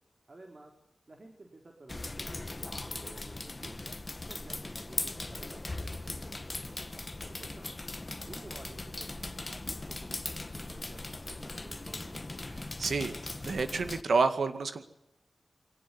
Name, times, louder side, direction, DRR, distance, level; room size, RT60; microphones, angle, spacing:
voice 1, 0.3-0.7 1.1-4.0 4.3-6.9 7.2-7.7 8.3-11.0 11.3-12.2, right 2 dB, 45° right, 3 dB, 3.8 m, -53 dB
sound 1, 1.9-14.0, left 2 dB, 30° left, 1.2 m, -39 dB
voice 2, 12.6-13.1 13.4-14.9, right 4 dB, 85° right, 10 dB, 2.1 m, -29 dB
23.5 x 18.0 x 9.9 m, 0.84 s
wide cardioid pair, 95°, 0 cm